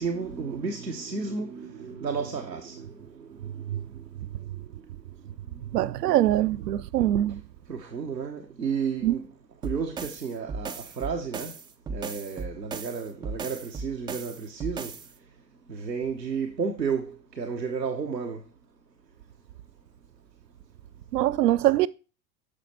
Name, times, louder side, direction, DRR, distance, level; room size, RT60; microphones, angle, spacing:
voice 1, 0.0-3.3 3.7-3.8 5.5-5.7 7.7-9.2 9.6-11.5 11.9-14.9 15.7-18.4, right 5 dB, 90° right, 1.0 m, -32 dB
voice 2, 5.7-7.4 9.0-9.1 21.1-21.9, right 13 dB, 70° right, 0.6 m, -23 dB
sound 1, 9.6-15.1, right 4 dB, 10° right, 0.3 m, -37 dB
9.9 x 6.5 x 4.1 m
figure-of-eight pair, 75°, 49 cm